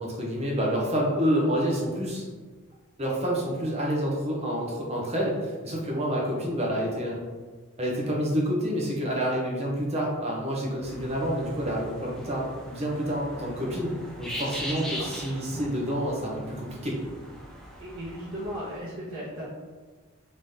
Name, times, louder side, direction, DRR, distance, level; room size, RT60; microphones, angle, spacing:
voice 1, 0.0-2.3 3.0-7.2 7.8-13.9 14.2-17.0, equal, 30° right, -3 dB, 0.7 m, -28 dB
sound 1, 10.8-18.8, equal, 5° left, 0.4 m, -40 dB
voice 2, 17.8-19.5, equal, 65° right, -10 dB, 1.1 m, -36 dB
3.6 x 3.3 x 2.7 m, 1.4 s
head